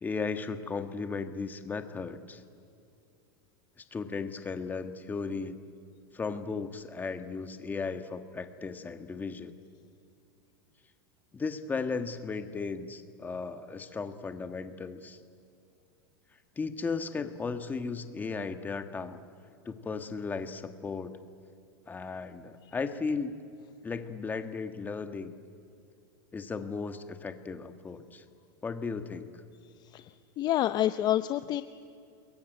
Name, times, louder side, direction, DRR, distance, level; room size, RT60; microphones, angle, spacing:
voice 1, 0.0-2.4 3.9-5.6 6.1-9.5 11.3-15.2 16.6-19.2 19.6-21.1 21.9-23.4 23.8-25.3 26.3-28.2 28.6-29.3, left 4 dB, 15° left, 8 dB, 1.4 m, -35 dB
voice 2, 29.8-31.6, left 12 dB, 35° left, 11 dB, 0.7 m, -29 dB
29.0 x 22.0 x 9.2 m, 2.6 s
supercardioid pair, 145°, 13 cm